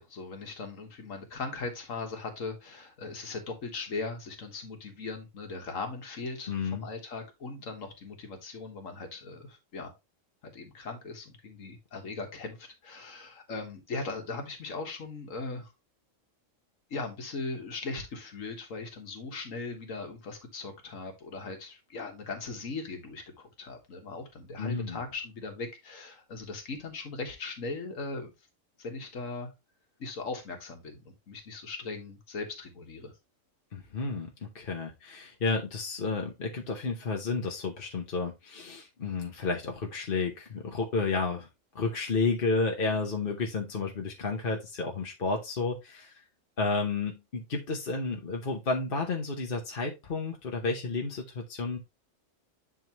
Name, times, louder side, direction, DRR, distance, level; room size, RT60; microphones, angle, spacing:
voice 1, 0.0-9.9 10.4-15.7 16.9-28.3 28.8-29.5 30.0-33.1, left 3 dB, 75° left, 1.9 m, -39 dB
voice 2, 6.5-6.9 24.6-25.0 33.7-34.3 34.5-41.5 41.7-46.1 46.6-51.8, left 4 dB, 45° left, 1.2 m, -31 dB
10.5 x 3.7 x 3.0 m
omnidirectional pair, 1.4 m